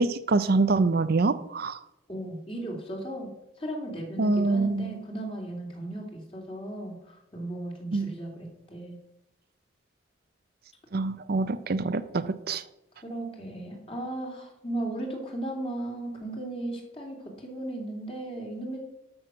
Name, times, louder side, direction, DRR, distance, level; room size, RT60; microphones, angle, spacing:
voice 1, 0.0-1.8 4.2-4.9 7.9-8.1 10.9-12.6, right 3 dB, 50° right, 12 dB, 0.5 m, -25 dB
voice 2, 2.1-3.3 3.6-9.0 13.0-18.8, right 1 dB, 30° left, 0 dB, 2.7 m, -36 dB
12.5 x 6.3 x 6.2 m, 0.88 s
head